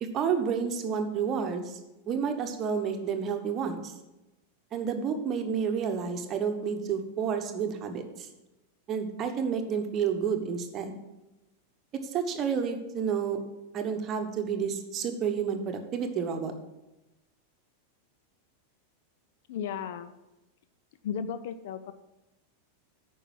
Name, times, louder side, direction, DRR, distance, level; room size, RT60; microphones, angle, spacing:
voice 1, 0.0-1.8 2.1-3.9 4.7-8.3 8.9-11.0 12.1-13.4 13.7-16.5, right 6 dB, 30° right, 6 dB, 1.1 m, -30 dB
voice 2, 19.5-20.1 21.0-21.9, left 7 dB, 55° left, 12 dB, 0.5 m, -34 dB
9.1 x 5.5 x 7.3 m, 1.0 s
figure-of-eight pair, 90°, 0 cm